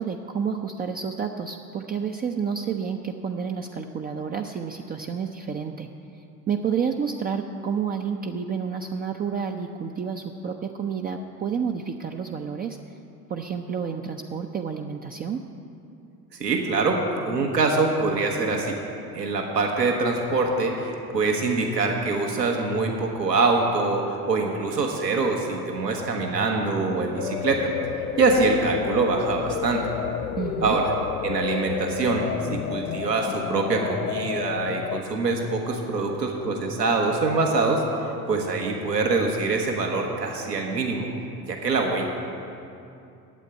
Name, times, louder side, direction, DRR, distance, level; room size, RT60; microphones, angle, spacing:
voice 1, 0.0-5.9 6.5-12.8 13.3-15.4 30.4-30.8, right 6 dB, 20° right, 3 dB, 0.4 m, -30 dB
voice 2, 16.4-18.8 19.1-27.7 28.2-29.8 30.6-30.9 31.2-37.8 38.3-41.1 41.5-42.0, right 3 dB, 85° right, 1 dB, 1.3 m, -24 dB
sound 1, 27.2-35.0, left 11 dB, 75° left, 0.6 m, -31 dB
8.3 x 8.3 x 9.3 m, 2.6 s
figure-of-eight pair, 60°, 48 cm